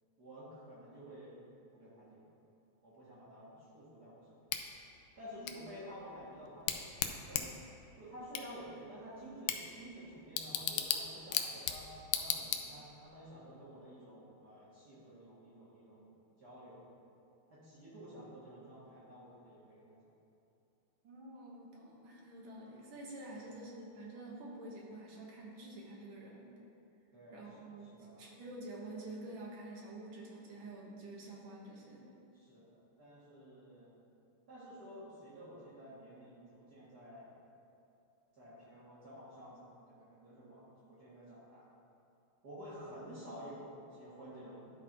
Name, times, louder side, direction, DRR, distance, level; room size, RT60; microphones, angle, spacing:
voice 1, 0.2-1.4 1.7-2.2 2.8-4.4 5.2-6.8 7.2-7.6 7.9-16.1 16.4-16.8 17.5-20.0 23.3-23.5 27.1-28.3 32.3-34.0 34.5-37.3 38.3-41.7 42.4-44.7, equal, 45° right, -9 dB, 2.2 m, -51 dB
Bicycle / Tick, 4.5-13.1, left 9 dB, 75° left, 1.2 m, -39 dB
voice 2, 21.0-26.5 27.3-32.0, right 2 dB, 65° right, -3 dB, 2.0 m, -48 dB
11.5 x 4.0 x 4.5 m, 2.7 s
omnidirectional pair, 2.4 m